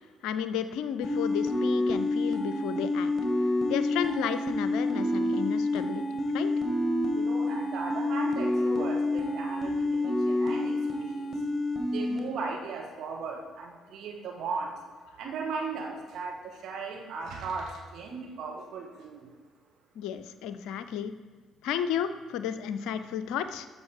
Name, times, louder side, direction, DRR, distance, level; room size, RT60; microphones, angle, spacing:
voice 1, 0.2-3.1 3.7-6.5 20.0-21.1 21.6-23.7, left 8 dB, 65° left, 11 dB, 0.5 m, -33 dB
sound 1, 1.0-12.2, left 2 dB, 25° left, 2.0 m, -28 dB
voice 2, 7.1-11.3 11.9-14.7 15.2-19.3, right 4 dB, 55° right, 0 dB, 1.8 m, -37 dB
13.0 x 5.3 x 4.9 m, 1.5 s
figure-of-eight pair, 45°, 0 cm